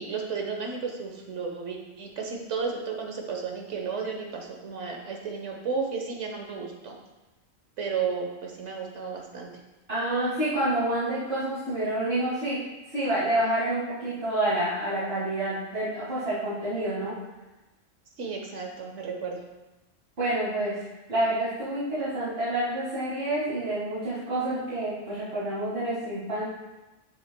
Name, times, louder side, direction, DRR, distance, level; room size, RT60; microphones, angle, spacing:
voice 1, 0.0-7.0 7.8-9.5 18.2-19.4, right 5 dB, 75° right, 1 dB, 1.5 m, -33 dB
voice 2, 9.9-12.6 12.9-17.1 20.2-26.5, right 1 dB, 55° right, -10 dB, 2.2 m, -28 dB
9.5 x 7.7 x 2.2 m, 1.0 s
omnidirectional pair, 1.2 m